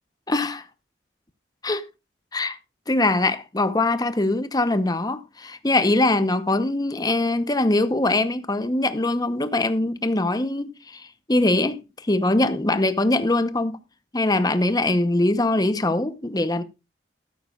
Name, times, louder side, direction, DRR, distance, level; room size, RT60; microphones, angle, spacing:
voice 1, 0.3-0.6 1.6-1.8 2.3-2.6 2.9-13.8 14.1-16.6, left 2 dB, 20° left, 0.9 m, -22 dB
13.5 x 12.5 x 2.4 m
head